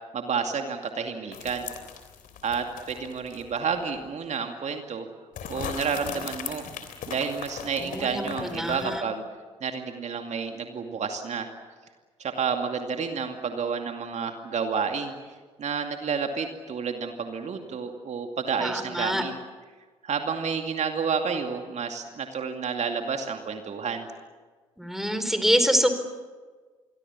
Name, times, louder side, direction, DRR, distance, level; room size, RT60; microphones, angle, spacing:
voice 1, 0.1-1.7 2.4-5.1 5.5-6.6 7.1-9.2 9.6-11.5 12.2-15.1 15.6-19.3 20.0-24.1, right 6 dB, 45° right, 5 dB, 2.4 m, -30 dB
sound 1, 1.3-3.6 3.9-4.0 5.4-9.0, left 7 dB, 60° left, 3.4 m, -39 dB
voice 2, 7.8-9.0 18.6-19.2 24.8-25.9, equal, ahead, 8 dB, 4.5 m, -25 dB
28.0 x 23.0 x 7.3 m, 1.4 s
figure-of-eight pair, 45°, 16 cm